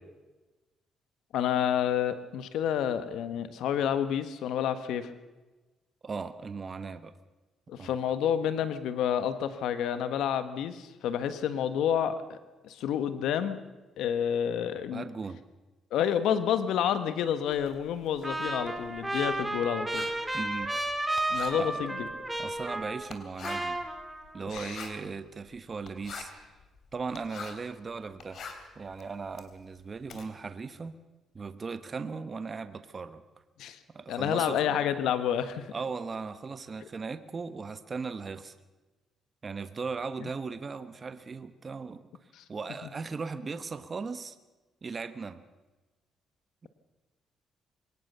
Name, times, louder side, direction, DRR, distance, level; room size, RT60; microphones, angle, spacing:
voice 1, 1.3-5.1 7.7-12.4 12.6-13.6 14.0-15.0 15.9-20.1 21.3-22.1 24.5-24.8 33.6-33.8 34.1-35.7 40.2-40.3 42.4-42.5, left 9 dB, 85° left, 11 dB, 1.3 m, -29 dB
voice 2, 6.0-7.1 7.8-7.9 14.9-15.4 20.3-20.7 21.5-21.8 22.4-23.8 24.3-26.3 26.9-28.4 28.7-30.9 31.3-33.2 33.9-34.6 35.7-38.5 39.4-42.0 42.5-44.4 44.8-45.4 46.6-46.7, right 4 dB, 35° right, 11 dB, 1.2 m, -37 dB
Writing, 17.5-27.7 28.1-30.3, left 5 dB, 60° left, 3.2 m, -46 dB
Trumpet, 18.2-23.2 23.4-24.5, right 1 dB, 10° right, 2.1 m, -33 dB
22.5 x 18.5 x 6.8 m, 1.2 s
cardioid pair, 90°, 0 cm